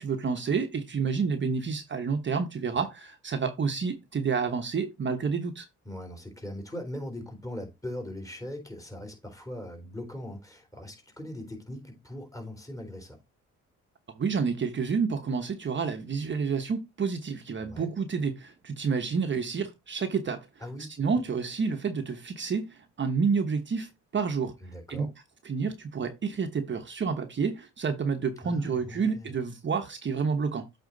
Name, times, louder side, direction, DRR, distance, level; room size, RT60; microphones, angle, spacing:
voice 1, 0.0-5.7 14.2-20.5 21.0-24.5 24.9-25.1 25.4-30.7, right 5 dB, 40° right, 1.1 m, -29 dB
voice 2, 5.9-13.2 17.6-17.9 20.6-20.9 24.6-25.1 28.4-29.3, left 1 dB, 10° left, 3.6 m, -40 dB
8.1 x 4.3 x 3.9 m
cardioid pair, 90°, 30 cm